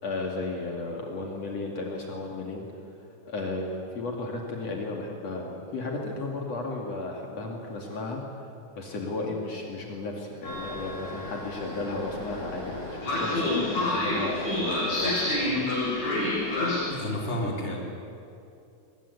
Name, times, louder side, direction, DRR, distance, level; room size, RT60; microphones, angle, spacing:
voice 1, 0.0-2.6 3.3-8.2 8.8-15.7, left 2 dB, 60° left, 0 dB, 3.6 m, -34 dB
Train, 10.4-16.8, left 2 dB, 75° left, 8.4 m, -29 dB
voice 2, 16.8-17.8, left 1 dB, 20° left, -1 dB, 4.0 m, -31 dB
23.0 x 21.0 x 9.8 m, 2.7 s
omnidirectional pair, 3.4 m